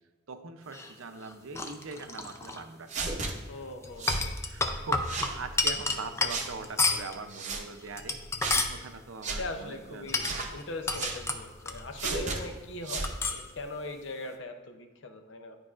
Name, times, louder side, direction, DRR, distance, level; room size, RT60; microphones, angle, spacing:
voice 1, 0.3-3.3 4.2-8.2 8.5-10.2 12.0-12.4, right 4 dB, 85° right, 8 dB, 0.6 m, -42 dB
sound 1, 0.7-2.6 3.8-7.2 7.8-8.8 10.1-12.2 12.4-12.5 13.0-13.5, left 3 dB, 15° left, 0.4 m, -31 dB
sound 2, 2.9-3.3 4.0-4.3 5.0-5.4 6.3-6.5 7.3-7.6 8.4-8.6 9.2-9.4 10.2-10.5 11.0-11.2 12.0-12.4 12.8-13.1, right 3 dB, 35° right, 0.7 m, -33 dB
voice 2, 3.5-4.2 9.2-15.6, left 2 dB, 65° left, 7 dB, 0.6 m, -40 dB
11.0 x 4.7 x 2.5 m, 1.3 s
head